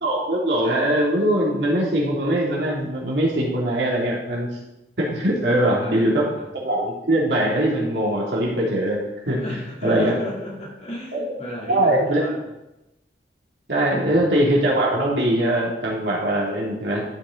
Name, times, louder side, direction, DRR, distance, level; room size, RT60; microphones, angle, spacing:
voice 1, 0.0-4.5 5.0-9.4 9.8-10.1 11.1-11.2 11.7-12.3 13.7-17.0, right 1 dB, 75° right, -4 dB, 2.6 m, -21 dB
voice 2, 5.8-6.5 9.3-12.5 13.8-14.5, equal, 40° left, -4 dB, 2.8 m, -36 dB
12.5 x 5.8 x 3.8 m, 0.94 s
head